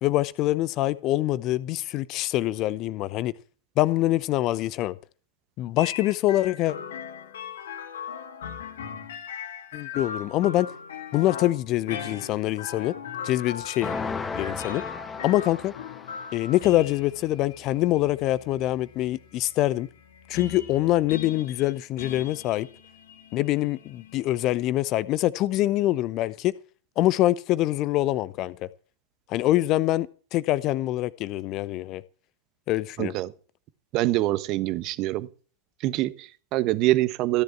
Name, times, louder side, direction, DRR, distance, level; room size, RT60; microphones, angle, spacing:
voice 1, 0.0-3.3 3.8-5.0 5.6-6.8 9.7-10.7 11.1-12.9 13.2-13.9 14.3-14.8 15.2-15.7 16.3-19.9 20.3-22.7 23.3-26.5 27.0-28.7 29.3-32.0 32.7-33.1, left 15 dB, 40° left, 0.7 m, -25 dB
sound 1, 5.8-24.5, left 7 dB, 60° left, 1.9 m, -40 dB
sound 2, 13.8-16.5, left 4 dB, 15° left, 1.0 m, -34 dB
voice 2, 33.0-33.3 33.9-35.3 35.8-37.4, right 17 dB, 40° right, 1.2 m, -25 dB
15.5 x 10.5 x 4.7 m
figure-of-eight pair, 90°, 0 cm